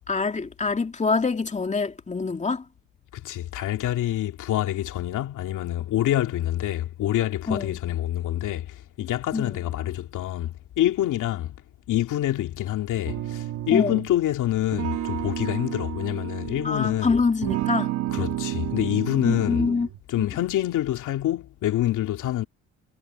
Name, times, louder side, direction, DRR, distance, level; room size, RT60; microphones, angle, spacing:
voice 1, 0.1-2.6 7.5-7.8 9.3-9.6 13.7-14.0 16.6-17.9 19.2-19.9 20.2-20.3, left 4 dB, 25° left, 2.4 m, -25 dB
voice 2, 3.1-11.5 11.9-17.2 18.1-19.7 20.1-22.4, left 13 dB, 85° left, 2.6 m, -26 dB
sound 1, 13.1-14.1 14.7-17.0 17.4-20.0, right 14 dB, 90° right, 2.4 m, -31 dB
cardioid pair, 90°, 30 cm